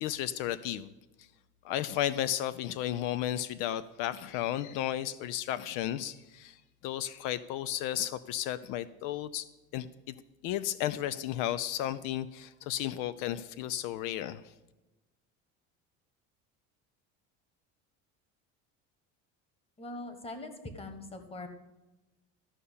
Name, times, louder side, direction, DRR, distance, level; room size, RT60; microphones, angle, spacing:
voice 1, 0.0-0.9 1.2-1.3 1.6-6.6 6.8-9.5 9.7-10.1 10.4-14.4, left 12 dB, 75° left, 15 dB, 0.6 m, -33 dB
voice 2, 19.8-21.5, left 2 dB, 20° left, 7 dB, 1.4 m, -42 dB
13.5 x 5.5 x 8.5 m, 1.1 s
cardioid pair, 145°, 32 cm